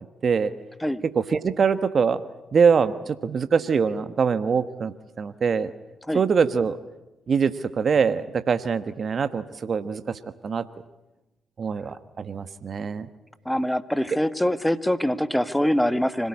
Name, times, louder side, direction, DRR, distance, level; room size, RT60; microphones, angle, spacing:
voice 1, 1.1-2.2 2.5-5.7 6.1-6.8 7.3-10.6 11.6-13.1, right 6 dB, 50° right, 11 dB, 1.3 m, -23 dB
voice 2, 13.5-16.3, equal, 5° left, 13 dB, 1.7 m, -24 dB
25.5 x 18.0 x 9.8 m, 0.98 s
hypercardioid pair, 50°, 0 cm